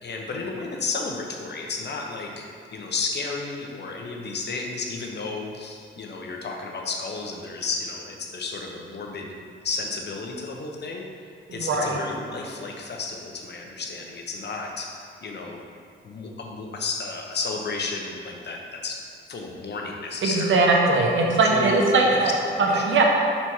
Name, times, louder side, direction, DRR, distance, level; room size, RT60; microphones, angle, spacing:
voice 1, 0.0-2.5 2.7-9.3 9.6-11.0 11.5-14.9 15.2-15.6 16.0-19.0 19.3-20.6 21.4-22.8, left 4 dB, 55° left, 1 dB, 0.9 m, -32 dB
voice 2, 11.6-12.0 20.2-22.3 22.9-23.0, right 3 dB, 70° right, 0 dB, 1.0 m, -20 dB
5.7 x 4.3 x 4.7 m, 2.4 s
cardioid pair, 85°, 20 cm